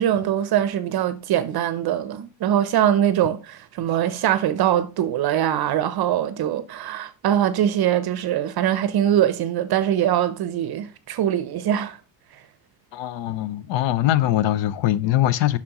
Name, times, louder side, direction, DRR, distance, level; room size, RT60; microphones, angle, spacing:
voice 1, 0.0-12.0 12.3-12.4, right 10 dB, 50° right, 0.6 m, -22 dB
voice 2, 12.9-15.6, left 13 dB, 65° left, 0.7 m, -22 dB
7.4 x 6.0 x 2.9 m
cardioid pair, 125°, 48 cm